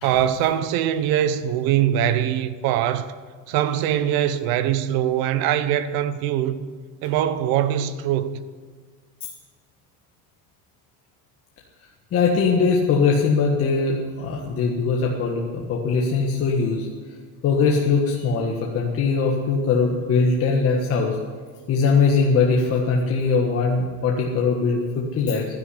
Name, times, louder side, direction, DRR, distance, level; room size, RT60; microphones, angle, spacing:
voice 1, 0.0-3.1 3.5-6.6 7.0-8.4, right 10 dB, 55° right, 1.0 m, -22 dB
voice 2, 12.1-16.9 17.4-21.2 21.7-25.5, left 4 dB, 30° left, 1.5 m, -21 dB
12.0 x 10.5 x 9.9 m
cardioid pair, 160°, 44 cm